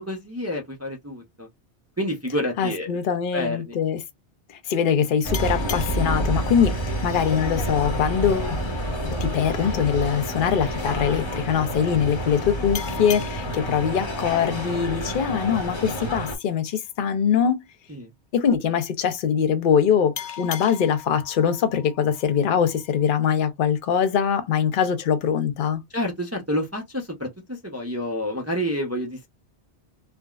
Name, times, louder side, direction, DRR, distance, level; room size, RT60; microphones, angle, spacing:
voice 1, 0.0-1.5 2.0-2.9 3.3-3.8 17.9-18.1 25.9-29.3, equal, 20° right, 0.5 m, -29 dB
voice 2, 2.6-4.0 4.5-6.8 7.0-8.6 9.1-17.6 18.3-25.8, left 8 dB, 55° left, 0.7 m, -23 dB
sound 1, 5.2-16.4, equal, 25° left, 0.9 m, -28 dB
sound 2, 5.3-8.6 12.7-16.0 20.2-23.1, left 9 dB, 85° left, 0.9 m, -40 dB
3.4 x 2.1 x 2.3 m
omnidirectional pair, 1.1 m